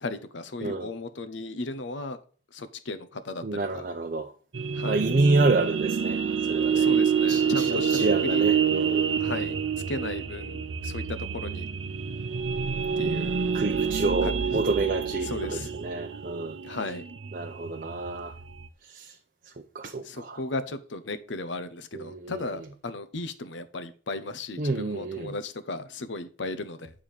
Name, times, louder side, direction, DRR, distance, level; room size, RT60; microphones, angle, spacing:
voice 1, 0.0-2.2 2.5-3.4 3.7-3.8 4.7-5.0 6.7-8.5 9.2-9.6 9.9-11.7 13.0-13.5 14.2-14.4 15.2-15.7 16.6-17.0 20.0-26.9, left 2 dB, 75° left, 0.8 m, -35 dB
voice 2, 0.6-0.9 3.4-4.3 4.8-6.2 6.5-6.9 7.3-9.1 13.0-16.8 17.3-18.4 18.8-19.2 19.7-20.4 21.9-22.7 24.6-25.3, right 3 dB, 50° right, 0.6 m, -28 dB
sound 1, 4.5-18.7, right 6 dB, 90° right, 0.7 m, -27 dB
8.9 x 3.7 x 6.5 m
head